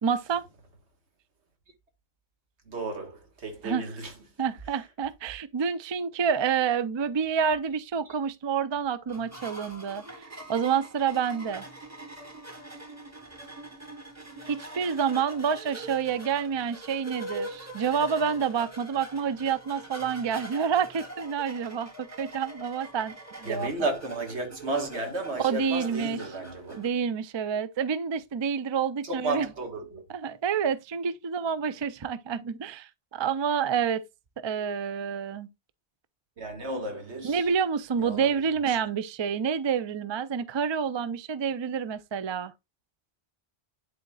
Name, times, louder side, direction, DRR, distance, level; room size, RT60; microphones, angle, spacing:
voice 1, 0.0-0.4 3.6-3.9 4.4-11.6 14.4-23.1 23.4-23.7 25.4-26.2 26.7-29.5 30.1-34.0 34.4-35.5 37.2-42.5, right 7 dB, 45° right, 0.3 m, -28 dB
voice 2, 2.7-4.1 23.5-26.7 29.0-30.0 36.4-37.4 38.0-38.3, right 2 dB, 85° right, 1.8 m, -33 dB
sound 1, 9.1-26.9, right 1 dB, 15° right, 1.1 m, -43 dB
10.5 x 4.1 x 2.3 m
omnidirectional pair, 1.1 m